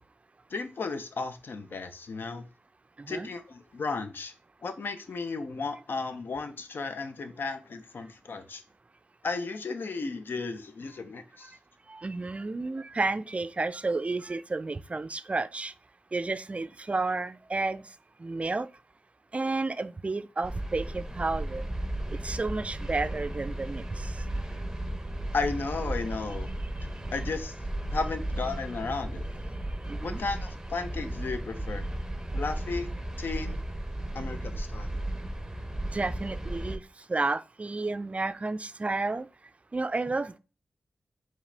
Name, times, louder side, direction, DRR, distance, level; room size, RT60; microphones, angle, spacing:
voice 1, 0.5-2.4 3.1-4.3 4.6-8.6 9.2-11.5 25.3-26.5 27.1-27.5 27.9-29.2 30.0-31.8 32.3-32.9 33.2-33.6 34.1-34.9, left 4 dB, 65° left, 0.6 m, -34 dB
voice 2, 3.0-3.3 11.9-15.7 16.1-17.9 18.2-18.7 19.3-21.7 22.1-24.3 26.8-26.9 29.9-30.2 35.9-36.8 37.1-39.3 39.7-40.4, right 3 dB, 35° right, 0.4 m, -31 dB
sound 1, 20.4-36.8, right 1 dB, 15° right, 0.7 m, -35 dB
4.7 x 3.0 x 3.3 m
cardioid pair, 45°, 4 cm